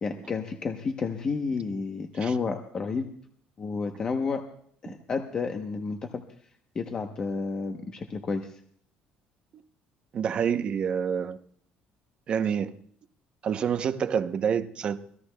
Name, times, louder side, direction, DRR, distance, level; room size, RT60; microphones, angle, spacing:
voice 1, 0.0-3.1 3.6-4.4 4.8-6.2 6.7-8.6, left 4 dB, 25° left, 5 dB, 0.8 m, -31 dB
voice 2, 10.1-11.4 12.3-12.8 13.4-15.0, right 7 dB, 35° right, 9 dB, 0.7 m, -27 dB
25.5 x 18.5 x 2.2 m, 0.62 s
cardioid pair, 165°, 3 cm